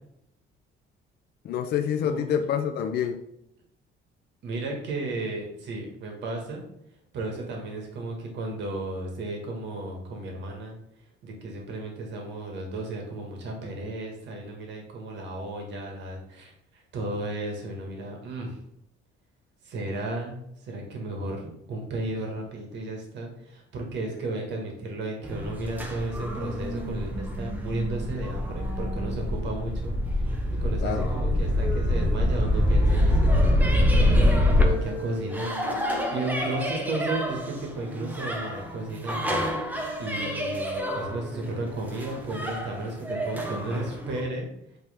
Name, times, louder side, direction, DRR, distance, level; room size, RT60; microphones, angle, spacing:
voice 1, 1.4-3.2 30.8-31.1, left 8 dB, 50° left, 5 dB, 0.5 m, -27 dB
voice 2, 2.0-2.5 4.4-6.6 7.1-10.8 11.2-18.6 19.6-44.5, right 2 dB, 60° right, 1 dB, 1.7 m, -34 dB
sound 1, 25.2-44.2, left 1 dB, 10° right, 0.7 m, -26 dB
8.3 x 3.4 x 3.5 m, 0.78 s
cardioid pair, 175°, 21 cm